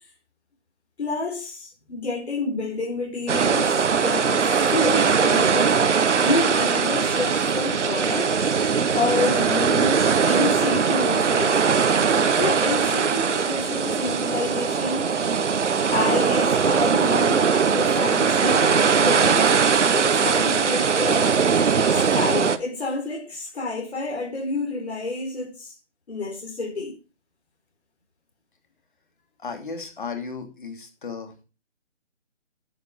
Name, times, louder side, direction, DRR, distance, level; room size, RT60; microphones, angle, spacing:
voice 1, 1.0-5.8 6.2-8.3 8.9-11.8 12.4-15.2 15.9-19.5 19.9-21.4 21.9-25.7 26.1-26.9, left 3 dB, 60° left, 4.4 m, -29 dB
sound 1, 3.3-22.6, right 6 dB, 75° right, 1.1 m, -20 dB
voice 2, 29.4-31.4, left 5 dB, 45° left, 2.8 m, -35 dB
11.0 x 8.0 x 5.3 m
hypercardioid pair, 175°, 36 cm